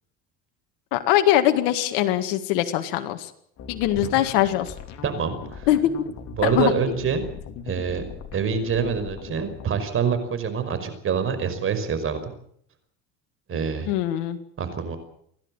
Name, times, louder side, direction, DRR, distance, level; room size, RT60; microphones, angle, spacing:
voice 1, 0.9-3.3 3.7-4.7 5.7-5.8 6.4-6.7 13.9-14.4, left 13 dB, 80° left, 7 dB, 1.9 m, -22 dB
sound 1, 3.6-9.7, left 7 dB, 55° left, 3.2 m, -40 dB
voice 2, 5.0-5.7 6.4-7.2 7.7-8.0 8.3-12.3 13.5-13.9 14.6-15.0, right 6 dB, 40° right, 10 dB, 5.4 m, -26 dB
30.0 x 12.0 x 9.0 m, 0.68 s
supercardioid pair, 105°, 33 cm